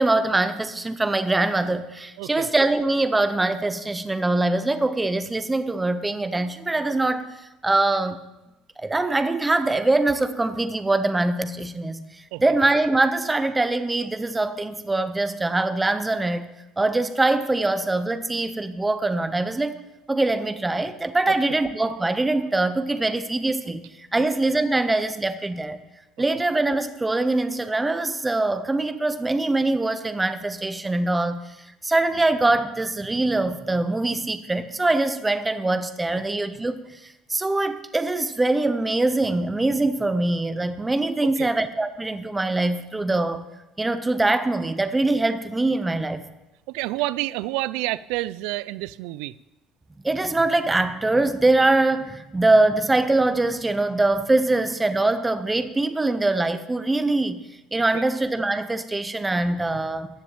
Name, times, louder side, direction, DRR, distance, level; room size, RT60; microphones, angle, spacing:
voice 1, 0.0-7.3 7.6-8.2 8.8-12.1 12.4-16.5 16.8-19.8 20.1-25.8 26.2-31.4 31.8-36.8 37.3-43.5 43.8-46.3 50.0-57.4 57.7-60.1, right 2 dB, 10° right, 11 dB, 0.7 m, -23 dB
voice 2, 2.2-2.5 12.3-12.4 21.3-21.4 41.2-41.5 46.7-49.4 57.9-58.1, right 18 dB, 85° right, 19 dB, 0.4 m, -29 dB
14.5 x 6.9 x 8.7 m, 0.98 s
cardioid pair, 180°, 0 cm